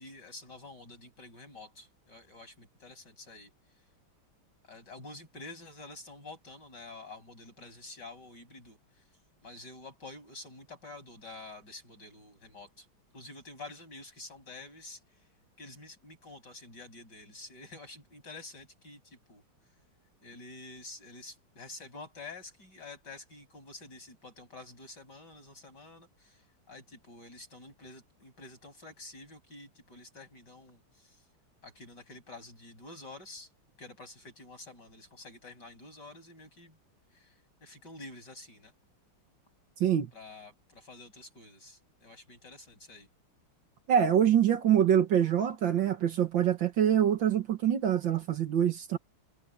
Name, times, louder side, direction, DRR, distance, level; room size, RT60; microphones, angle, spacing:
voice 1, 0.0-3.9 4.6-12.9 13.1-19.8 20.2-31.3 31.6-33.5 33.8-36.8 37.1-38.7 40.1-43.1, left 2 dB, 50° left, 8.8 m, -49 dB
voice 2, 43.9-49.0, right 9 dB, 60° right, 1.9 m, -25 dB
omnidirectional pair, 2.4 m